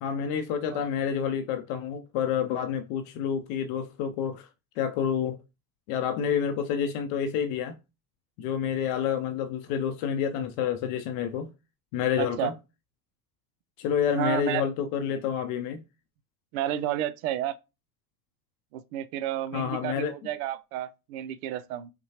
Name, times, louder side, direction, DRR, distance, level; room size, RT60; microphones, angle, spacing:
voice 1, 0.0-4.5 4.8-5.4 5.9-7.8 8.4-11.5 11.9-12.5 13.8-15.8 19.5-20.1, left 8 dB, 55° left, 0.6 m, -28 dB
voice 2, 12.2-12.5 14.1-14.6 16.5-17.6 18.7-21.9, right 11 dB, 60° right, 0.5 m, -31 dB
5.4 x 2.2 x 2.8 m
hypercardioid pair, 70°, 49 cm